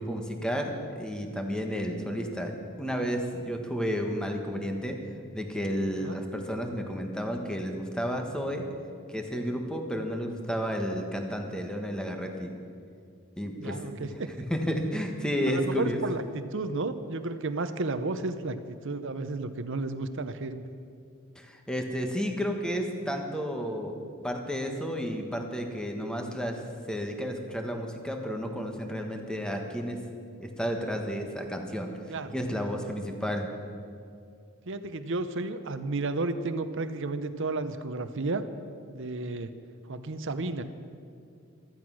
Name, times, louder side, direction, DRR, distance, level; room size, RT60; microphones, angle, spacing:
voice 1, 0.0-5.0 5.3-8.7 9.1-12.5 13.4-13.8 14.5-16.0 21.3-24.0 24.2-26.6 26.9-30.0 30.4-31.9 32.3-33.5, equal, 5° left, 3 dB, 1.4 m, -32 dB
voice 2, 13.6-14.3 15.5-20.6 32.1-32.3 34.7-38.4 38.9-39.5 39.9-40.6, right 3 dB, 60° right, 10 dB, 0.9 m, -32 dB
14.5 x 13.5 x 6.3 m, 2.4 s
head